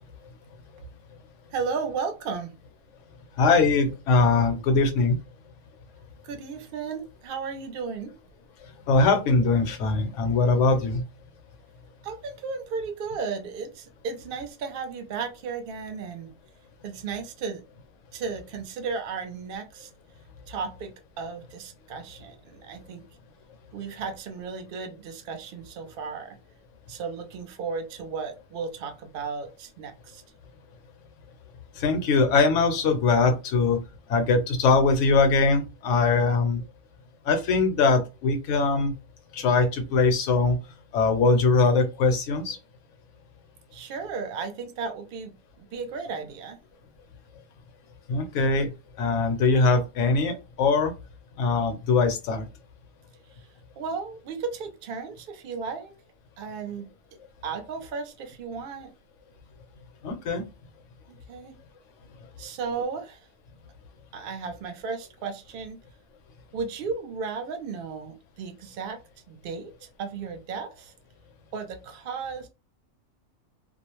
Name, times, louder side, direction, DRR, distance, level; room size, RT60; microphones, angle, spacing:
voice 1, 1.5-2.5 6.2-8.1 12.0-16.3 16.8-17.6 18.1-19.9 20.5-23.1 23.7-26.4 26.9-30.2 43.7-46.6 53.8-55.9 56.4-56.9 57.4-58.9 61.1-61.6 62.4-63.2 64.1-65.8 66.5-69.0 69.3-70.9 71.5-72.5, right 5 dB, 60° right, 0.6 m, -34 dB
voice 2, 3.4-5.2 8.9-11.0 31.7-33.8 34.1-36.6 37.2-39.0 39.3-40.6 40.9-42.6 48.1-48.7 49.0-50.9 51.4-52.4 60.0-60.4, left 3 dB, 70° left, 0.9 m, -22 dB
2.4 x 2.0 x 2.9 m
omnidirectional pair, 1.4 m